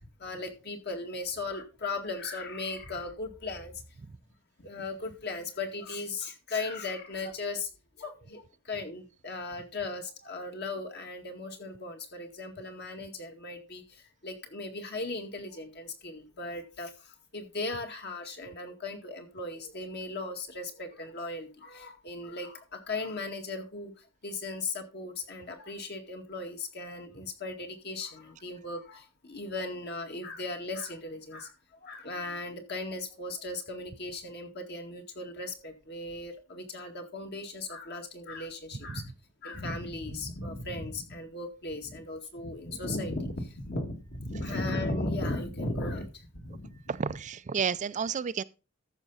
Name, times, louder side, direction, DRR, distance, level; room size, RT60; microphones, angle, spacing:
voice 1, 0.2-3.8 4.6-7.7 8.0-39.1 39.4-46.8, left 2 dB, 50° left, 2.0 m, -37 dB
voice 2, 46.9-48.4, right 6 dB, 35° right, 0.4 m, -31 dB
13.5 x 5.9 x 4.1 m
head